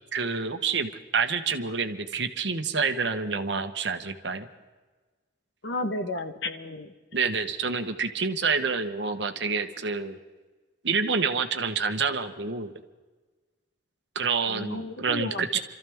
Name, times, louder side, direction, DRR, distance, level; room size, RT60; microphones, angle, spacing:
voice 1, 0.1-4.5 7.1-10.2 10.8-12.7 14.1-15.6, right 5 dB, 65° right, 7 dB, 1.1 m, -28 dB
voice 2, 5.6-6.9 14.5-15.6, left 2 dB, 70° left, 8 dB, 1.2 m, -33 dB
27.0 x 14.0 x 3.6 m, 1.3 s
head